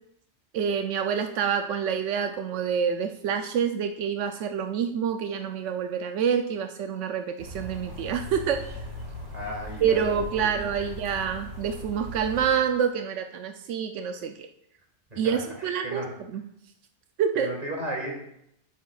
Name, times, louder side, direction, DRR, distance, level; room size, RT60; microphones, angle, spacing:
voice 1, 0.5-8.6 9.8-14.5 15.2-16.4 17.2-17.5, right 7 dB, 90° right, 6 dB, 0.9 m, -27 dB
sound 1, 7.4-12.5, equal, 60° right, 2.1 m, -39 dB
voice 2, 9.3-10.9 15.1-16.1 17.3-18.1, right 1 dB, 35° right, -3 dB, 2.6 m, -35 dB
11.0 x 8.5 x 2.4 m, 0.77 s
omnidirectional pair, 1.2 m